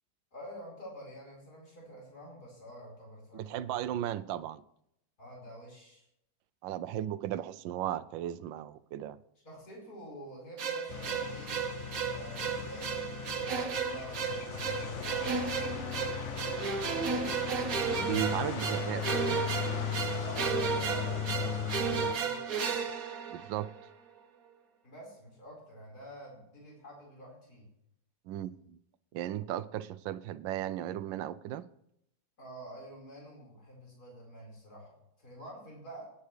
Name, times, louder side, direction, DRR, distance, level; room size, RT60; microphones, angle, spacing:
voice 1, 0.3-3.7 5.2-6.1 9.4-11.6 12.1-15.5 18.3-18.8 20.2-22.8 24.8-27.7 32.4-36.1, equal, 55° left, 5.2 m, -48 dB
voice 2, 3.3-4.6 6.6-9.2 18.0-19.5 23.3-23.7 28.3-28.8 29.1-31.7, right 12 dB, 85° right, 1.3 m, -36 dB
sound 1, 10.6-23.8, right 6 dB, 50° right, 1.5 m, -34 dB
sound 2, 10.9-22.2, left 9 dB, 85° left, 0.6 m, -37 dB
20.5 x 10.0 x 3.3 m
omnidirectional pair, 2.0 m